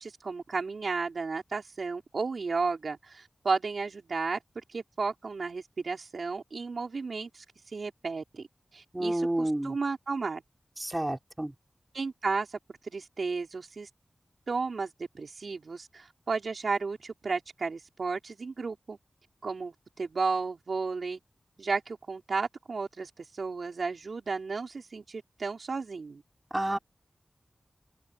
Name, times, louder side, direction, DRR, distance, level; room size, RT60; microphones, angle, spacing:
voice 1, 0.0-7.4 7.7-8.5 8.7-10.4 11.9-12.6 12.8-13.9 14.5-14.9 15.1-19.0 19.4-21.2 21.6-26.2, right 4 dB, 80° right, 4.7 m, -33 dB
voice 2, 8.9-9.7 10.8-11.5 26.5-26.8, right 1 dB, 20° right, 3.3 m, -29 dB
wide cardioid pair, 70°, 0 cm